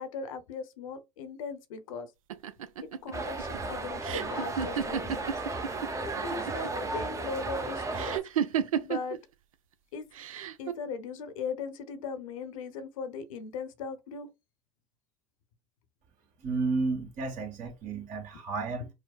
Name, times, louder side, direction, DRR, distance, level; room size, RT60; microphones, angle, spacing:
voice 1, 0.0-2.1 3.0-5.3 6.0-8.1 8.8-9.2 9.9-10.1 10.6-14.3 18.8-18.9, left 5 dB, 75° left, 0.7 m, -38 dB
sound 1, 2.3-5.9 6.2-6.8 7.9-9.2 10.1-10.7, right 8 dB, 90° right, 0.4 m, -32 dB
sound 2, 3.1-8.2, right 3 dB, 15° right, 0.7 m, -34 dB
voice 2, 16.4-18.9, right 3 dB, 50° right, 1.6 m, -32 dB
4.9 x 2.0 x 2.3 m
hypercardioid pair, 85°, 17 cm